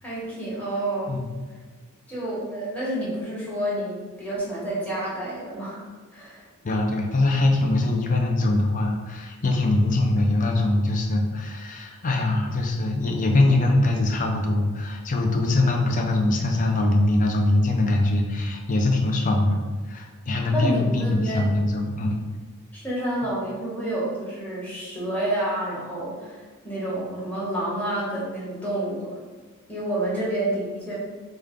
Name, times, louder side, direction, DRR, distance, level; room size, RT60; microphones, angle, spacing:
voice 1, 0.0-1.2 2.1-5.8 6.1-6.4 20.5-21.5 22.7-29.2 29.7-30.9, right 1 dB, 5° left, -8 dB, 1.2 m, -29 dB
voice 2, 6.6-19.6 19.9-22.2, left 2 dB, 35° left, 1 dB, 0.5 m, -22 dB
5.1 x 2.2 x 3.6 m, 1.4 s
head